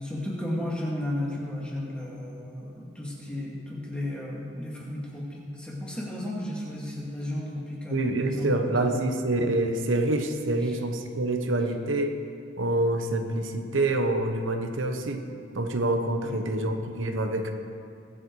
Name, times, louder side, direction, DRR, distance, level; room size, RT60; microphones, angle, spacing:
voice 1, 0.0-9.1 10.6-10.8 16.2-16.5, left 1 dB, 5° left, -4 dB, 2.2 m, -34 dB
voice 2, 7.9-12.2 12.6-15.2 15.5-17.5, right 2 dB, 85° right, 5 dB, 1.1 m, -26 dB
22.5 x 7.8 x 4.7 m, 2.6 s
head